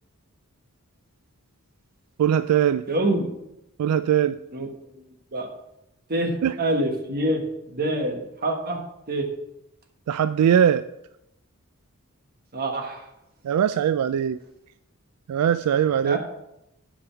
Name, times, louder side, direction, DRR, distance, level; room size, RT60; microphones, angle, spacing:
voice 1, 2.2-2.8 3.8-4.4 6.4-6.5 10.1-10.8 13.4-14.4 15.3-16.2, right 9 dB, 85° right, 14 dB, 0.3 m, -21 dB
voice 2, 2.9-3.3 4.5-4.7 5.3-5.5 6.1-7.4 7.7-8.8 9.1-9.3 12.5-13.0 16.0-16.2, right 1 dB, 45° right, 3 dB, 1.4 m, -25 dB
8.7 x 5.3 x 5.9 m, 0.85 s
head